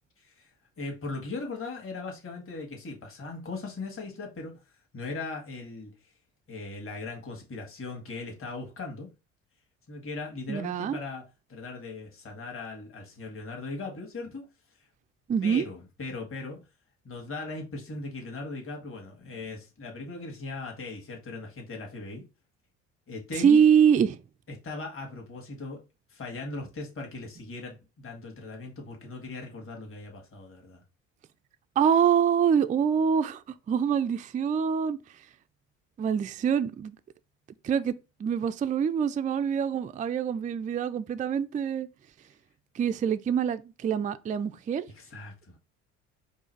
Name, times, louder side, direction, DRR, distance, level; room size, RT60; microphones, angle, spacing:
voice 1, 0.2-4.6 4.9-5.9 6.5-9.1 9.9-11.2 11.5-14.4 15.4-16.6 17.0-22.2 23.1-23.7 24.5-25.8 26.1-30.8 44.9-45.6, left 3 dB, 35° left, 1.8 m, -39 dB
voice 2, 10.5-11.0 15.3-15.6 23.4-24.2 31.8-33.4 33.7-35.0 36.0-37.0 37.6-37.9 38.2-41.9 42.7-44.8, right 7 dB, 20° right, 0.4 m, -25 dB
4.6 x 2.4 x 4.5 m
hypercardioid pair, 55°, 37 cm